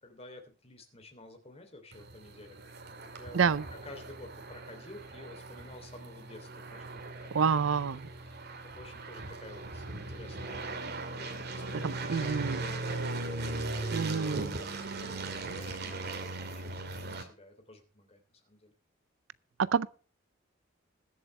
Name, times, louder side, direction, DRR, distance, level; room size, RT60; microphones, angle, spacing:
voice 1, 0.0-7.5 7.7-14.7 15.0-18.7, left 2 dB, 30° left, 3.0 m, -52 dB
sound 1, 1.9-17.2, right 2 dB, 55° right, 2.1 m, -39 dB
voice 2, 3.3-3.6 7.3-8.1 11.7-12.6 13.9-14.5 19.6-19.9, right 6 dB, 80° right, 0.5 m, -28 dB
21.0 x 7.9 x 3.3 m
head